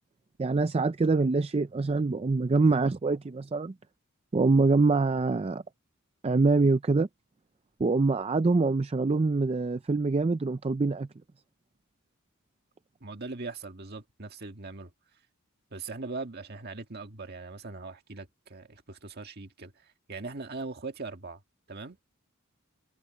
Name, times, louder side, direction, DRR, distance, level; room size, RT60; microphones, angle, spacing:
voice 1, 0.4-3.7 4.3-5.6 6.2-7.1 7.8-11.1, right 3 dB, 30° right, 0.4 m, -25 dB
voice 2, 13.0-14.9 15.7-19.7 20.1-21.4 21.7-22.0, right 3 dB, 50° right, 1.8 m, -40 dB
head